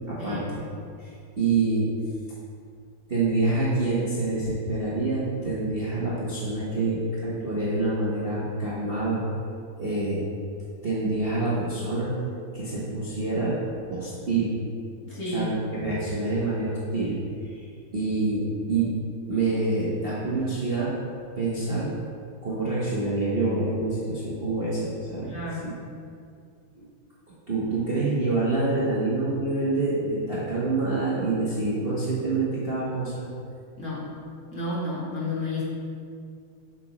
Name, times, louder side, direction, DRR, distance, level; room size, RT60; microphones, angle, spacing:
voice 1, 0.1-0.6 1.0-1.9 3.1-9.2 9.8-10.2 10.8-12.1 12.5-13.6 13.9-14.5 15.3-17.1 17.4-17.7 17.9-18.9 19.3-20.9 21.4-21.9 22.4-25.3 26.7-26.9 27.5-33.2, right 3 dB, 35° right, -9 dB, 1.0 m, -26 dB
voice 2, 15.0-15.6 25.2-25.6 33.8-34.1 34.5-35.6, left 2 dB, 40° left, -8 dB, 2.1 m, -31 dB
7.9 x 6.2 x 3.0 m, 2.3 s
omnidirectional pair, 2.1 m